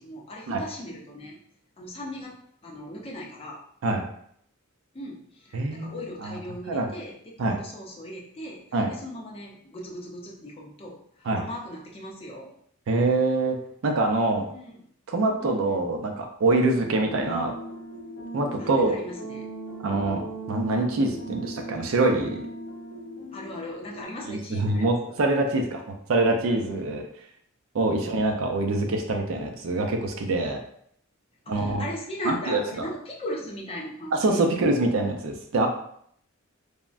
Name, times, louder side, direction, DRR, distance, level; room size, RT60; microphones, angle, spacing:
voice 1, 0.0-1.4 1.8-2.3 2.6-3.6 4.9-12.5 14.5-14.8 15.4-15.8 18.6-19.4 23.3-25.1 26.7-26.9 27.9-28.1 31.4-34.4, equal, 25° left, -2 dB, 0.5 m, -38 dB
voice 2, 5.5-5.9 6.2-6.4 6.7-6.9 7.4-7.6 8.7-8.9 11.3-11.4 12.9-13.6 13.8-14.5 15.1-17.5 18.3-19.0 19.8-20.2 20.5-22.4 24.2-25.8 26.1-27.0 27.7-30.6 31.5-31.8 32.3-32.9 34.1-35.7, right 2 dB, 70° right, 4 dB, 0.4 m, -24 dB
sound 1, 16.8-24.0, right 1 dB, 70° left, 0.7 m, -39 dB
3.3 x 2.1 x 2.4 m, 0.67 s
head